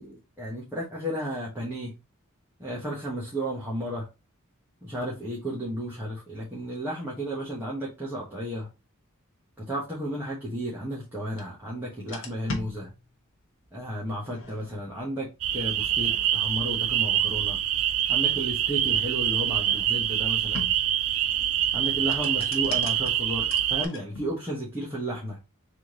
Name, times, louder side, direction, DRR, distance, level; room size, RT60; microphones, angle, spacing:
voice 1, 0.0-1.9 2.6-4.1 4.8-8.7 9.7-12.9 13.7-17.6 18.1-20.7 21.7-25.4, equal, 10° right, 1.2 m, -33 dB
sound 1, 11.4-11.5 11.9-13.4 14.1-14.9 15.7-16.6 17.7-20.1 20.5-21.2 21.8-24.5, left 3 dB, 65° left, 1.1 m, -42 dB
sound 2, 15.4-23.9, right 11 dB, 65° right, 0.4 m, -25 dB
3.7 x 3.2 x 3.7 m
head